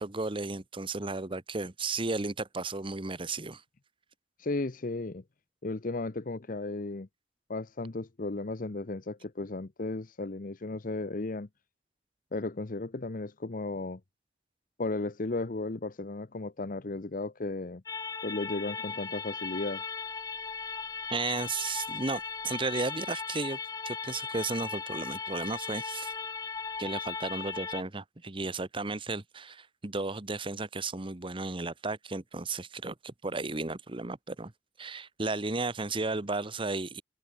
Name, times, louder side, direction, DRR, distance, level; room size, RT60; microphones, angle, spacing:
voice 1, 0.0-3.6 21.1-23.6 23.8-26.1 26.8-34.5 34.8-37.0, right 3 dB, 30° right, 1.1 m, -34 dB
voice 2, 4.4-5.2 5.6-7.1 7.5-11.5 12.3-14.0 14.8-17.8 18.2-19.8, left 2 dB, 50° left, 0.8 m, -35 dB
sound 1, 17.9-27.8, left 5 dB, 20° left, 0.3 m, -37 dB
head